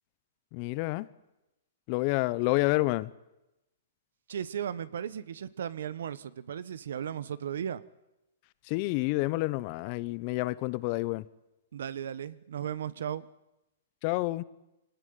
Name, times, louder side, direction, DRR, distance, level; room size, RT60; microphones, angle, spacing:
voice 1, 0.5-1.1 1.9-3.1 8.7-11.2 14.0-14.4, left 21 dB, 40° left, 19 dB, 0.9 m, -29 dB
voice 2, 4.3-7.8 11.7-13.3, right 9 dB, 75° right, 18 dB, 1.2 m, -36 dB
24.0 x 18.5 x 9.6 m, 0.95 s
hypercardioid pair, 140°, 0 cm